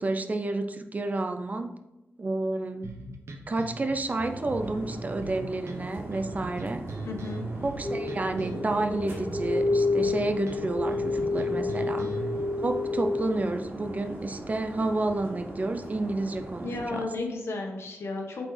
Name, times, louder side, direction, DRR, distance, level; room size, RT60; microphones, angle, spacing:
voice 1, 0.0-1.7 2.2-2.9 3.5-6.8 7.6-12.1 12.6-17.1, right 2 dB, 35° right, 7 dB, 0.5 m, -30 dB
sound 1, 2.8-12.4, right 2 dB, 80° right, 0.9 m, -40 dB
sound 2, 4.2-16.9, right 1 dB, 55° right, 1.9 m, -41 dB
voice 2, 7.0-7.4 16.6-18.5, left 3 dB, 70° left, 2 dB, 1.3 m, -33 dB
sound 3, 7.8-13.4, left 3 dB, 10° left, 1.1 m, -29 dB
8.5 x 4.2 x 3.3 m, 0.98 s
wide cardioid pair, 105°, 5 cm